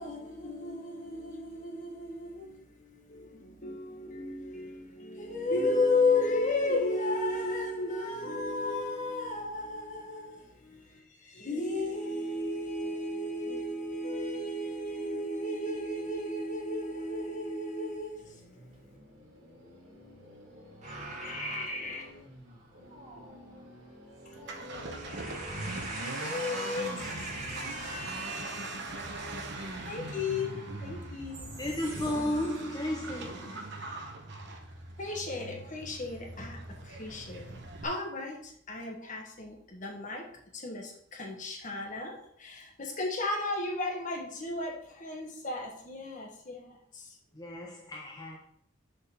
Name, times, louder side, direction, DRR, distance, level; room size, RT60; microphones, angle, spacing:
voice 1, 0.0-10.8 11.2-18.2 21.2-22.0 26.2-26.9 29.9-31.6 32.2-32.5 35.0-36.6 36.9-40.2 40.5-46.7 46.9-47.0, left 2 dB, 40° left, 1.3 m, -34 dB
sound 1, 18.1-29.0, equal, 80° right, 2.9 m, -51 dB
voice 2, 20.8-22.1 22.4-23.9 24.3-32.6, right 2 dB, 35° right, 2.3 m, -43 dB
Accelerating revving vroom, 24.3-37.8, right 2 dB, 55° right, 1.0 m, -41 dB
voice 3, 31.6-33.5 47.3-48.4, left 1 dB, 20° left, 0.6 m, -33 dB
6.7 x 4.0 x 5.8 m
head